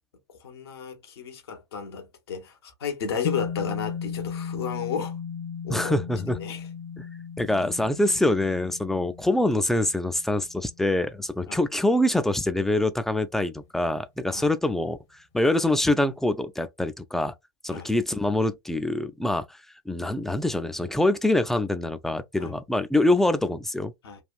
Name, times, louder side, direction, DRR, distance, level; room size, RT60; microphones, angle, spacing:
voice 1, 0.3-5.1 5.6-6.0 6.4-6.7 11.5-11.6 14.3-14.5 17.7-17.9 22.4-22.5 24.0-24.2, left 6 dB, 70° left, 1.0 m, -33 dB
sound 1, 3.2-11.7, left 7 dB, 45° left, 1.0 m, -36 dB
voice 2, 5.7-6.4 7.0-7.1 7.4-15.0 15.3-17.3 17.6-19.6 19.9-23.9, left 1 dB, 5° left, 0.4 m, -25 dB
3.3 x 2.4 x 2.3 m
figure-of-eight pair, 85°, 14 cm